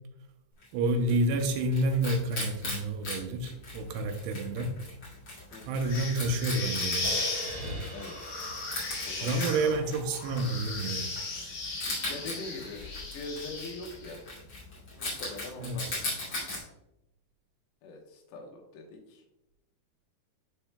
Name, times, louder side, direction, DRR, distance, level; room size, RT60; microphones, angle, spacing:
Wild animals, 0.6-16.6, left 2 dB, 35° left, 2.7 m, -40 dB
voice 1, 0.7-4.8 5.7-7.2 9.2-11.1 15.6-16.0, right 2 dB, 85° right, 4 dB, 2.6 m, -29 dB
sound 1, 5.8-14.1, left 3 dB, 65° left, 4.1 m, -36 dB
sound 2, 7.0-10.5, equal, 25° right, 1.7 m, -43 dB
voice 2, 7.9-8.3 9.1-9.9 12.1-14.2 14.9-16.0 17.8-19.2, left 3 dB, 85° left, 2 dB, 3.2 m, -43 dB
11.0 x 4.6 x 2.2 m, 0.88 s
omnidirectional pair, 4.8 m